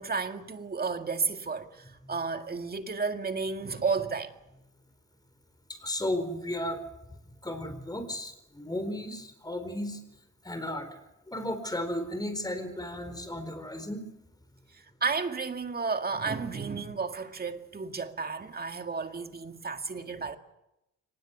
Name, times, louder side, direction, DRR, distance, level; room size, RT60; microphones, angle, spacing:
voice 1, 0.0-4.3 14.7-20.4, right 4 dB, 30° right, 2.0 m, -32 dB
voice 2, 5.7-6.8 7.4-10.0 10.4-10.9 11.3-14.0, left 1 dB, 15° left, 4.5 m, -34 dB
24.0 x 19.5 x 8.2 m
cardioid pair, 90°, 30 cm